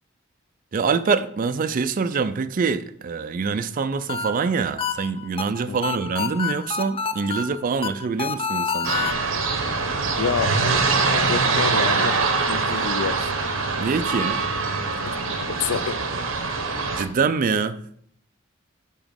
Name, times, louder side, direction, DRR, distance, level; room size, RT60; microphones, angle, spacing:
voice 1, 0.7-9.1 13.8-14.4 17.0-17.8, right 5 dB, 45° right, 0.4 m, -25 dB
sound 1, 3.8-9.1, left 6 dB, 25° left, 0.4 m, -28 dB
sound 2, 8.8-17.0, right 4 dB, 70° right, 1.0 m, -23 dB
voice 2, 10.2-12.2 12.5-13.3 15.0-15.2 15.5-16.0, left 6 dB, 85° left, 0.5 m, -28 dB
8.6 x 3.0 x 5.2 m
head